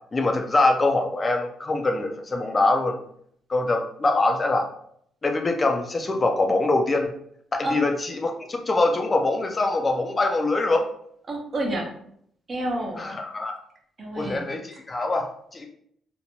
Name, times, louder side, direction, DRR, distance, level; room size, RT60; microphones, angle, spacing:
voice 1, 0.1-3.0 3.5-4.7 5.2-7.1 7.5-10.9 13.0-13.5 14.2-15.7, left 2 dB, 30° left, 3 dB, 0.3 m, -23 dB
voice 2, 11.3-11.9 12.5-13.1 14.0-14.4, right 1 dB, 40° right, 1 dB, 0.7 m, -29 dB
2.6 x 2.1 x 2.9 m, 0.68 s
cardioid pair, 90°, 0 cm